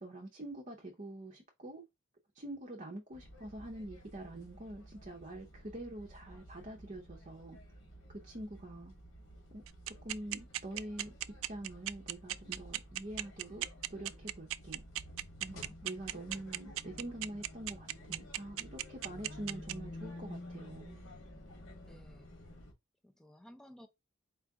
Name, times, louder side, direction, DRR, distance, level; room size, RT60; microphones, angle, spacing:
voice 1, 0.0-1.8 2.3-7.6 8.1-8.9 9.5-11.1 11.5-14.8 15.4-21.0, right 1 dB, 35° right, 0.7 m, -45 dB
sound 1, 3.1-22.7, left 1 dB, 90° left, 1.5 m, -52 dB
sound 2, 9.7-19.7, right 14 dB, 75° right, 0.3 m, -36 dB
voice 2, 21.8-22.3 23.0-23.9, equal, 5° left, 0.4 m, -56 dB
4.6 x 2.4 x 3.5 m
head